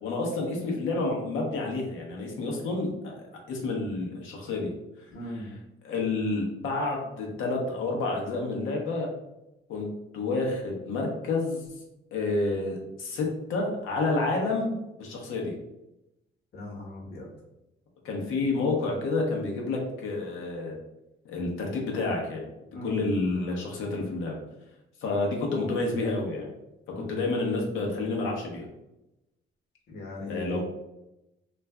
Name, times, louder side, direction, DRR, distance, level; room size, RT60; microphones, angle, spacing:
voice 1, 0.0-4.7 5.2-5.6 5.8-9.1 9.7-9.9 10.1-11.7 12.1-15.5 18.0-20.8 21.2-22.4 22.8-24.4 25.0-26.5 26.9-28.7 30.3-30.6, left 3 dB, 85° left, -1 dB, 0.8 m, -29 dB
voice 2, 5.1-5.5 16.5-17.3 22.7-23.1 26.9-27.2 29.9-30.6, left 1 dB, 55° left, -1 dB, 1.0 m, -38 dB
2.4 x 2.1 x 3.4 m, 0.92 s
cardioid pair, 90°, 20 cm